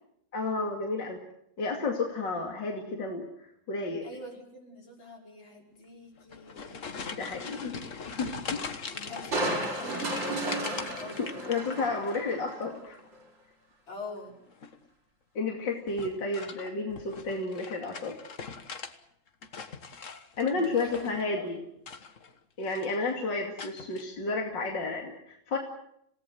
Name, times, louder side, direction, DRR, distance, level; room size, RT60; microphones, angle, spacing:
voice 1, 0.3-1.2 1.6-4.1 7.1-8.7 11.2-13.0 15.3-18.2 20.0-20.1 20.4-21.6 22.6-25.6, left 3 dB, 65° left, 1 dB, 3.1 m, -32 dB
voice 2, 4.0-6.9 8.9-11.5 13.9-14.4 20.5-21.1 21.3-21.4, left 2 dB, 85° left, 0 dB, 6.1 m, -44 dB
sound 1, 6.2-12.2 12.5-13.1 14.5-14.9 15.9-19.0 19.3-21.3 21.8-22.4 22.6-23.1 23.6-24.0, left 5 dB, 45° left, 1.6 m, -41 dB
Crushing, 9.3-12.7 13.1-13.2, right 1 dB, 70° right, 6.4 m, -33 dB
27.5 x 18.0 x 7.8 m, 0.75 s
omnidirectional pair, 2.1 m